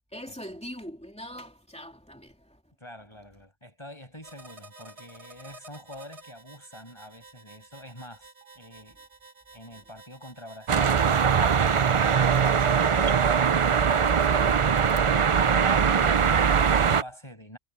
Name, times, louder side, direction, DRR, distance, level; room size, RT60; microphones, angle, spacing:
voice 1, 0.1-2.6 14.2-14.5, equal, 5° left, 3.3 m, -42 dB
voice 2, 2.8-9.0 9.5-13.3 15.5-17.6, equal, 25° left, 6.8 m, -46 dB
sound 1, 4.2-10.7, right 2 dB, 70° right, 2.8 m, -51 dB
sound 2, 10.7-17.0, right 6 dB, 45° right, 0.4 m, -21 dB
omnidirectional pair, 1.2 m